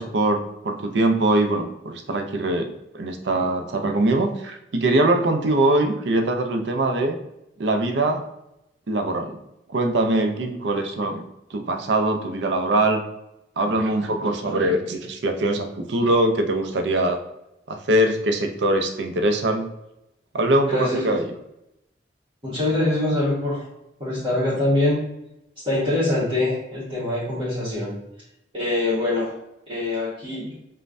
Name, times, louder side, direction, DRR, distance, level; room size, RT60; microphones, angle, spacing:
voice 1, 0.0-7.2 7.6-8.3 8.9-9.4 9.7-11.2 11.5-13.0 13.6-17.2 17.7-19.7 20.3-21.3, right 1 dB, 70° right, 5 dB, 0.5 m, -22 dB
voice 2, 20.7-21.2 22.4-23.7 24.0-25.0 25.6-27.9 28.5-30.5, left 2 dB, 30° right, -10 dB, 1.4 m, -24 dB
5.2 x 2.2 x 2.6 m, 0.85 s
head